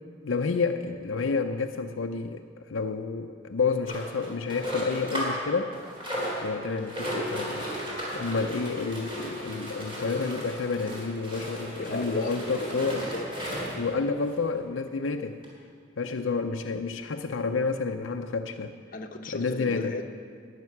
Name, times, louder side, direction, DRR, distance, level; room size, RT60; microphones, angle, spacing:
voice 1, 0.2-2.4 2.7-5.7 6.4-7.7 8.1-13.1 13.7-15.4 16.0-18.7 19.3-20.0, left 4 dB, 80° left, 5 dB, 0.6 m, -29 dB
sound 1, 3.8-5.4 5.7-13.9 14.5-14.6 14.9-15.0 15.4-15.5, equal, 25° right, 3.7 m, -35 dB
voice 2, 11.8-13.2 18.9-20.0, left 2 dB, 45° left, 4 dB, 0.9 m, -36 dB
14.0 x 6.7 x 9.6 m, 2.1 s
head